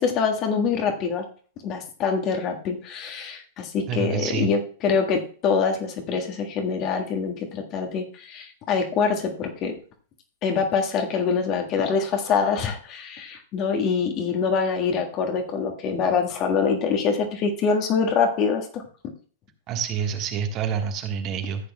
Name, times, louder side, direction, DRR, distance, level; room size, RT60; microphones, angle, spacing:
voice 1, 0.0-1.2 1.6-9.7 10.4-18.8, left 5 dB, 35° left, 3 dB, 1.6 m, -25 dB
voice 2, 3.9-4.5 19.7-21.7, right 7 dB, 35° right, 5 dB, 1.4 m, -27 dB
14.5 x 8.4 x 2.3 m, 0.43 s
figure-of-eight pair, 100°, 0 cm